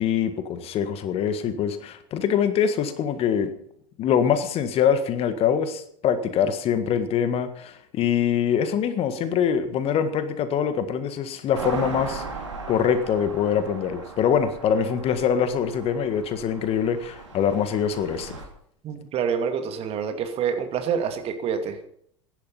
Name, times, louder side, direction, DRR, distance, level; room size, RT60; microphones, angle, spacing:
voice 1, 0.0-3.5 4.0-12.2 12.7-18.3, left 8 dB, 40° left, 11 dB, 1.7 m, -24 dB
sound 1, 11.5-18.5, right 4 dB, 85° right, 3.4 m, -38 dB
voice 2, 18.8-21.9, right 7 dB, 40° right, 7 dB, 2.5 m, -27 dB
16.5 x 11.0 x 5.6 m, 0.66 s
figure-of-eight pair, 80°, 15 cm